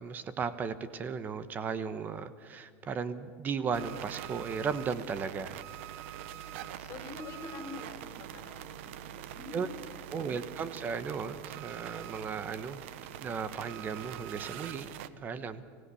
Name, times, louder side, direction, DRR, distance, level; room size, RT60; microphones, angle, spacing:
voice 1, 0.0-5.6 9.5-9.7 10.1-12.8 13.2-14.9 15.2-15.6, right 6 dB, 25° right, 13 dB, 1.1 m, -35 dB
sound 1, 3.7-15.1, right 11 dB, 80° right, 1.0 m, -44 dB
voice 2, 6.2-10.4, left 3 dB, 40° left, 5 dB, 4.2 m, -47 dB
24.5 x 16.5 x 8.4 m, 2.2 s
supercardioid pair, 145°, 7 cm